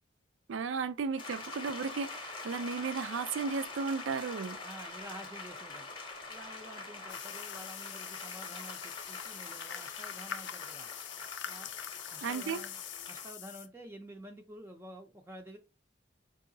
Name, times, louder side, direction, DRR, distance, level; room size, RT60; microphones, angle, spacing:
voice 1, 0.5-4.6 12.2-12.6, right 5 dB, 80° right, 0.4 m, -34 dB
sound 1, 1.2-13.3, left 3 dB, 25° left, 0.8 m, -45 dB
voice 2, 4.6-5.9 6.3-10.9 11.5-11.7 12.1-12.8 13.1-15.6, right 1 dB, 10° right, 0.4 m, -49 dB
sound 2, 7.1-13.7, left 10 dB, 65° left, 0.4 m, -43 dB
4.7 x 3.0 x 2.7 m
head